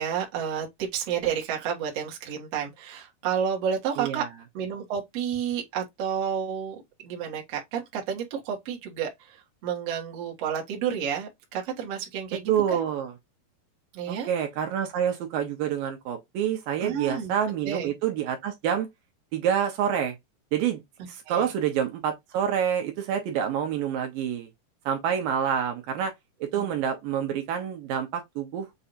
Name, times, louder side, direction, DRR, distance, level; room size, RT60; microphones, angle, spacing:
voice 1, 0.0-4.2 4.5-12.8 13.9-14.3 16.8-17.3 17.6-17.9 21.3-21.5 26.5-26.7, right 8 dB, 55° right, 2.0 m, -31 dB
voice 2, 4.0-4.3 12.5-13.1 14.1-18.9 19.3-20.2 20.5-20.8 21.1-24.5 24.9-26.1 26.4-28.7, right 9 dB, 75° right, 2.5 m, -27 dB
6.9 x 2.6 x 2.5 m
omnidirectional pair, 4.2 m